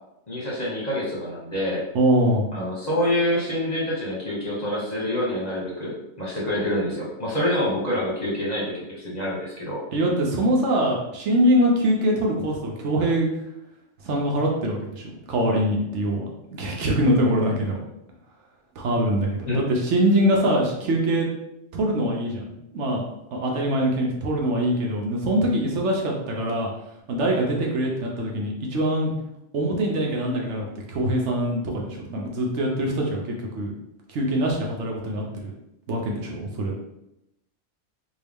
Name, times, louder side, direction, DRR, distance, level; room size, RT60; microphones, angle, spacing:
voice 1, 0.3-1.8 2.5-9.8 19.5-19.6, left 1 dB, 40° left, -5 dB, 0.8 m, -26 dB
voice 2, 1.9-2.5 9.9-13.3 14.0-16.2 16.5-17.8 18.8-21.3 21.7-23.0 23.3-26.7 27.1-29.1 29.5-33.7 34.1-35.5 35.9-36.8, right 1 dB, 65° right, -1 dB, 1.0 m, -23 dB
3.6 x 2.3 x 3.5 m, 0.85 s
omnidirectional pair, 1.3 m